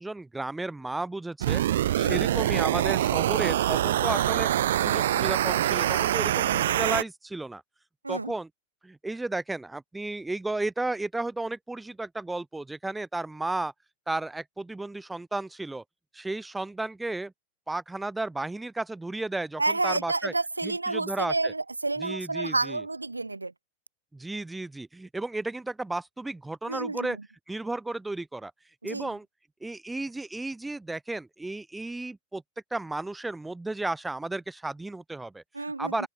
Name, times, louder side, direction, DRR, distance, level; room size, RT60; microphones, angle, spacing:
voice 1, 0.0-1.6 2.0-7.6 8.1-8.5 8.8-13.7 14.1-15.8 16.1-17.3 17.7-20.3 20.6-21.5 22.0-22.8 24.1-27.2 27.5-28.5 28.8-29.3 29.6-32.4 32.7-35.4 35.8-36.1, right 2 dB, 5° right, 4.5 m, -33 dB
sound 1, 1.4-7.0, right 12 dB, 60° right, 3.8 m, -25 dB
voice 2, 19.6-23.5 26.7-27.1 28.8-29.1 35.5-36.1, right 3 dB, 80° right, 3.9 m, -30 dB
open air
figure-of-eight pair, 90°, 0 cm